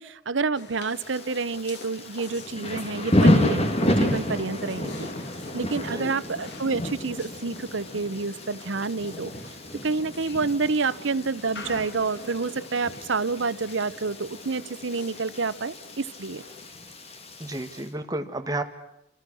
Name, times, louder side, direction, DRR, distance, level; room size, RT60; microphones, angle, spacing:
voice 1, 0.0-5.1 5.5-9.3 9.8-16.4, right 4 dB, 80° right, 15 dB, 0.9 m, -28 dB
sound 1, 0.5-16.7, left 2 dB, 65° left, 2.9 m, -45 dB
Thunder / Rain, 1.0-17.8, left 1 dB, 35° left, 2.4 m, -30 dB
voice 2, 17.4-18.6, right 1 dB, 20° right, 6 dB, 1.8 m, -31 dB
29.5 x 27.0 x 6.3 m, 0.83 s
head